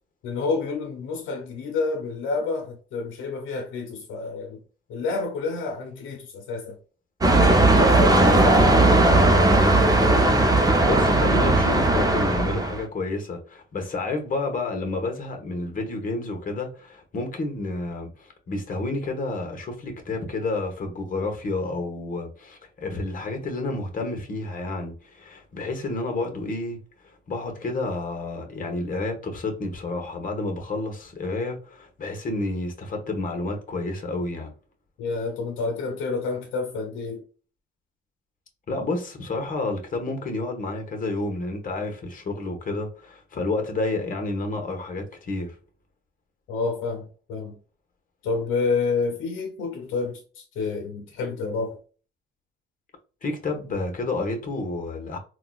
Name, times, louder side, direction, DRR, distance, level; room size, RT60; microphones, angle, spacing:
voice 1, 0.2-4.6 4.9-6.8 7.7-9.1 35.0-37.2 46.5-47.6 48.2-51.8, left 4 dB, 90° left, 0.7 m, -29 dB
sound 1, 7.2-12.8, right 2 dB, 20° right, 0.7 m, -18 dB
voice 2, 8.0-8.5 10.8-26.8 27.0-34.5 38.7-45.6 53.2-55.2, left 2 dB, 45° left, 1.2 m, -30 dB
3.7 x 2.3 x 2.3 m
cardioid pair, 90°, 20 cm